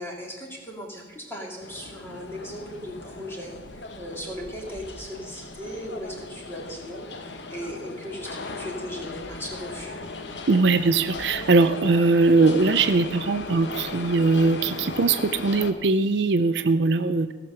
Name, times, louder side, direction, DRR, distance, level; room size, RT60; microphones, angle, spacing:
voice 1, 0.0-10.0, equal, 15° left, -1 dB, 2.0 m, -37 dB
PA and arrival, 1.6-15.7, left 3 dB, 65° left, 0.9 m, -38 dB
voice 2, 10.5-17.3, right 3 dB, 60° right, 11 dB, 0.5 m, -21 dB
16.0 x 5.9 x 6.7 m, 1.3 s
head